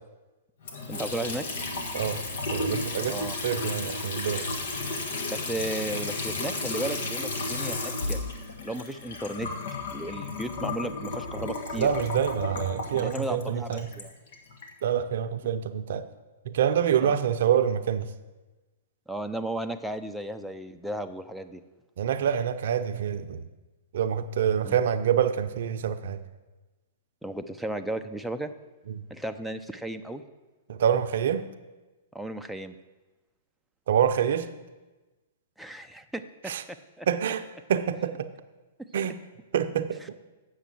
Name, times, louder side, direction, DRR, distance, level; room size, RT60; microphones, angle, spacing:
Water tap faucet / Sink (filling or washing) / Trickle dribble, 0.6-14.7, left 3 dB, 65° left, 1.7 m, -33 dB
voice 1, 0.9-1.4 3.1-3.4 5.3-8.2 8.6-9.5 9.9-11.9 12.9-14.1 17.0-17.2 19.1-21.6 24.6-24.8 27.2-28.5 29.1-30.2 32.1-32.8 35.6-36.5 37.0-37.1 40.0-40.1, right 1 dB, ahead, 6 dB, 0.6 m, -34 dB
voice 2, 2.5-3.2 3.4-4.4 11.8-13.9 14.8-16.1 16.5-18.1 22.0-23.5 23.9-26.2 30.7-31.5 33.9-34.5 36.5-36.6 37.1-37.4 37.7-38.3 38.9-39.2 39.5-40.0, right 8 dB, 65° right, 10 dB, 0.6 m, -26 dB
8.1 x 6.5 x 7.7 m, 1.2 s
hypercardioid pair, 120°, 0 cm